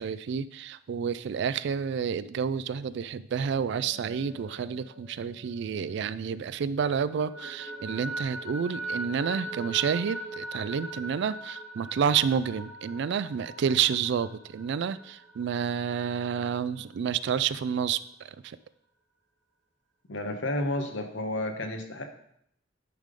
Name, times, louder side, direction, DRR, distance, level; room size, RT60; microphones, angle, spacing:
voice 1, 0.0-18.0 18.4-18.6, right 7 dB, 60° right, 16 dB, 0.3 m, -29 dB
sound 1, 3.8-6.5 6.8-16.2, right 2 dB, 80° right, 1.6 m, -41 dB
voice 2, 20.1-22.0, left 1 dB, 75° left, 5 dB, 1.1 m, -31 dB
10.5 x 3.7 x 5.2 m, 0.71 s
head